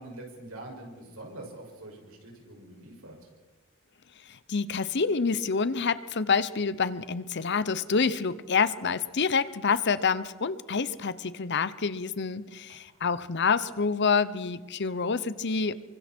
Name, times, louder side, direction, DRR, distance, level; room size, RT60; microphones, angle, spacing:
voice 1, 0.0-3.2 12.7-13.2, right 1 dB, 80° right, 0 dB, 6.2 m, -45 dB
voice 2, 4.3-15.8, left 5 dB, 55° left, 15 dB, 0.8 m, -27 dB
28.5 x 24.5 x 4.5 m, 1.3 s
head